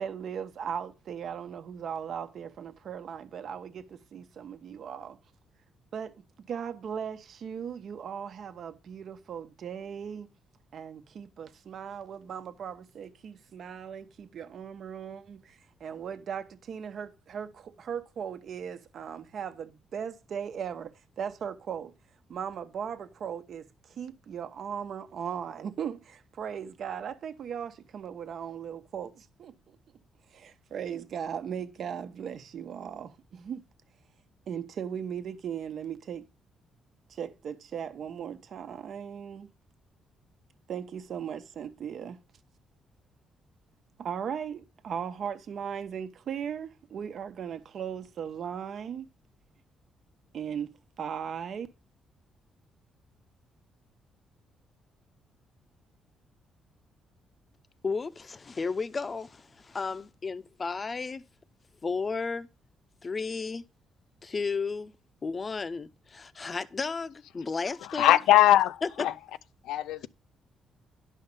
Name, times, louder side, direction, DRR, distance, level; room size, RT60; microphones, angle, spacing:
voice 1, 0.0-5.2 5.9-10.3 10.7-21.9 22.3-29.8 30.3-33.6 34.5-36.3 37.1-39.5 40.7-42.2 44.0-49.1 50.3-51.7, right 8 dB, 60° right, 1.1 m, -38 dB
voice 2, 57.8-61.2 61.8-62.5 63.0-63.6 64.2-64.9 65.2-68.2 68.8-69.1, left 4 dB, 35° left, 0.7 m, -33 dB
voice 3, 67.9-69.1 69.7-70.1, left 13 dB, 85° left, 0.5 m, -21 dB
11.0 x 5.7 x 5.5 m
cardioid pair, 90°, 0 cm